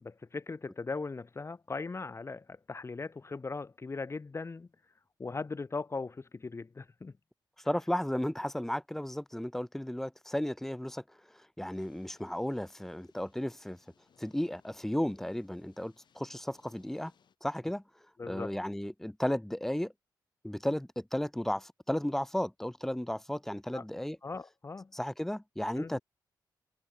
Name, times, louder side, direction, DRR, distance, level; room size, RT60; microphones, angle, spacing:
voice 1, 0.0-4.7 5.2-7.1 18.2-18.6 23.7-23.8 24.2-24.9 25.7-26.0, left 4 dB, 35° left, 1.6 m, -39 dB
voice 2, 7.6-11.0 11.3-13.8 14.2-17.1 17.4-17.8 18.3-19.9 20.4-24.2 24.9-26.0, left 1 dB, 5° left, 0.5 m, -34 dB
sound 1, 11.7-17.4, left 7 dB, 70° left, 7.6 m, -68 dB
cardioid pair, 80°, 8 cm